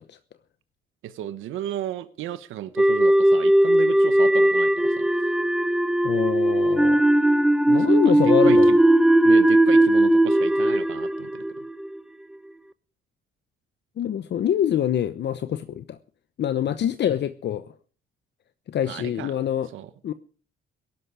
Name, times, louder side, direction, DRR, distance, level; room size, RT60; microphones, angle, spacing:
voice 1, 1.0-5.1 7.8-8.0 8.4-8.8 9.2-11.4 18.9-19.3 19.7-19.9, right 12 dB, 85° right, 1.1 m, -34 dB
sound 1, 2.8-12.0, right 1 dB, 5° right, 0.8 m, -18 dB
voice 2, 6.0-7.0 7.7-8.7 14.0-16.0 16.4-17.7 18.7-19.7 20.0-20.1, left 10 dB, 60° left, 0.9 m, -25 dB
16.5 x 12.0 x 4.9 m
cardioid pair, 90°, 20 cm